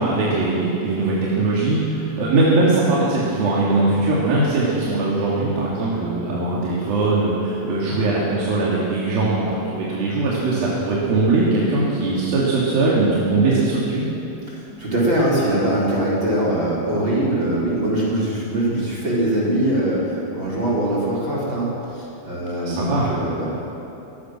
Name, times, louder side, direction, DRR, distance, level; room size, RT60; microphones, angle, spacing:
voice 1, 0.0-14.1 22.7-23.1, right 2 dB, 75° right, -7 dB, 4.8 m, -20 dB
voice 2, 14.5-23.4, right 1 dB, 30° right, -6 dB, 5.8 m, -22 dB
25.0 x 20.5 x 6.3 m, 2.9 s
omnidirectional pair, 4.2 m